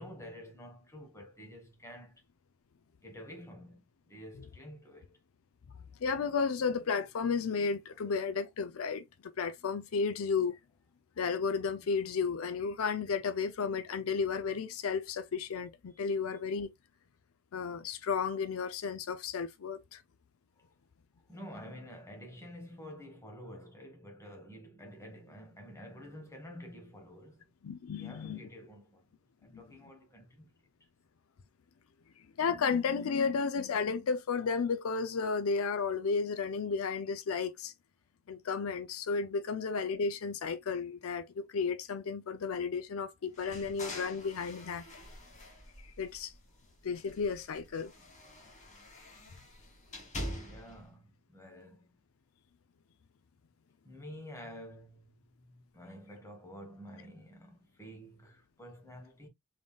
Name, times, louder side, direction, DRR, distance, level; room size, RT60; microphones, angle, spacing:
voice 1, 0.0-2.2 3.0-5.2 20.6-20.7 21.3-27.5 27.9-29.1 29.4-30.5 50.2-51.9 53.8-59.3, equal, 15° left, 1.3 m, -49 dB
voice 2, 6.0-10.6 11.2-16.7 17.5-20.0 27.6-28.5 29.5-29.6 32.4-37.7 38.3-44.8 46.0-46.3 46.8-47.9, left 5 dB, 80° left, 0.5 m, -33 dB
sound 1, 43.3-46.5 46.9-50.8, left 1 dB, 35° left, 1.5 m, -45 dB
3.7 x 3.5 x 2.3 m
head